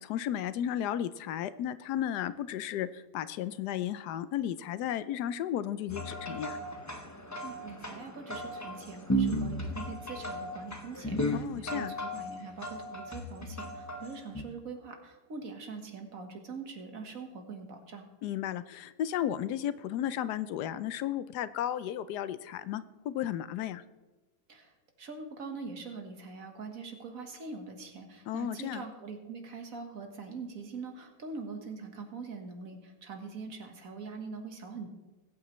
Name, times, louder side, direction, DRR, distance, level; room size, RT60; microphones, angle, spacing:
voice 1, 0.0-6.6 11.3-11.9 18.2-23.8 28.3-28.8, left 10 dB, 90° left, 15 dB, 1.2 m, -34 dB
sound 1, 5.9-14.4, equal, 20° left, 0.5 m, -35 dB
voice 2, 7.4-18.1 24.5-24.7 25.0-34.9, right 4 dB, 60° right, 4 dB, 1.8 m, -43 dB
20.5 x 8.6 x 3.1 m, 1.2 s
omnidirectional pair, 1.7 m